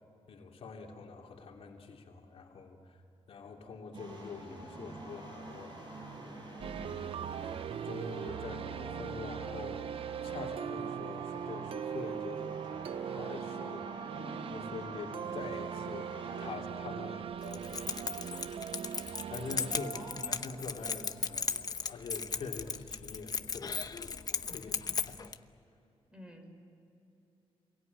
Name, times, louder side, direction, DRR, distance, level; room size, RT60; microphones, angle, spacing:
voice 1, 0.3-2.8 3.3-5.7 6.6-7.3 7.5-9.9 10.2-12.9 13.1-13.9 14.5-17.9 19.3-25.3, left 4 dB, 70° left, 1 dB, 2.9 m, -45 dB
sound 1, 3.9-16.6, right 1 dB, 50° right, 7.3 m, -48 dB
sound 2, 6.6-21.5, right 8 dB, 65° right, 0.6 m, -40 dB
voice 2, 13.9-14.6 19.9-20.4 26.1-26.5, left 1 dB, 10° right, 4 dB, 5.5 m, -49 dB
Keys jangling, 17.4-25.4, left 5 dB, 40° left, 0.9 m, -37 dB
28.0 x 22.5 x 9.4 m, 2.9 s
cardioid pair, 110°, 10 cm